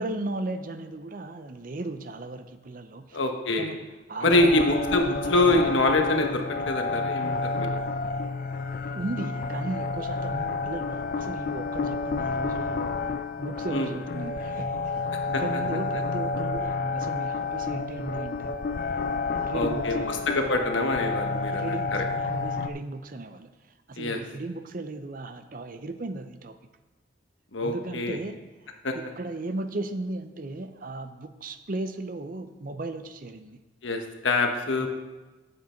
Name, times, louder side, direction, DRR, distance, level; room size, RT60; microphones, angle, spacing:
voice 1, 0.0-3.2 3.6-3.8 4.1-5.7 8.9-13.0 13.4-18.6 19.3-20.3 21.5-26.6 27.6-33.6 34.8-34.9, right 2 dB, 45° right, 9 dB, 0.6 m, -36 dB
voice 2, 3.1-3.7 4.2-7.8 13.7-13.9 15.3-15.4 19.5-21.7 24.0-24.2 27.5-28.2 28.8-28.9 33.8-34.9, left 2 dB, 75° left, 4 dB, 1.1 m, -25 dB
sound 1, 4.2-22.7, left 4 dB, 45° left, 0.4 m, -30 dB
9.4 x 7.6 x 4.5 m, 1.2 s
head